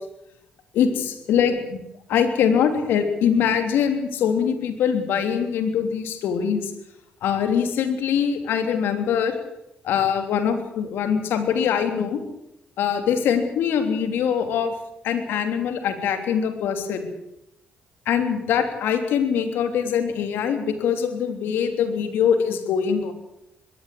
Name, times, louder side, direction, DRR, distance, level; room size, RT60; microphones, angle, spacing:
voice 1, 0.7-1.8 2.1-6.7 7.2-9.4 9.8-12.2 12.8-14.7 15.0-17.1 18.0-23.1, left 7 dB, 80° left, 7 dB, 3.3 m, -23 dB
21.5 x 17.0 x 8.6 m, 0.85 s
supercardioid pair, 50°, 4 cm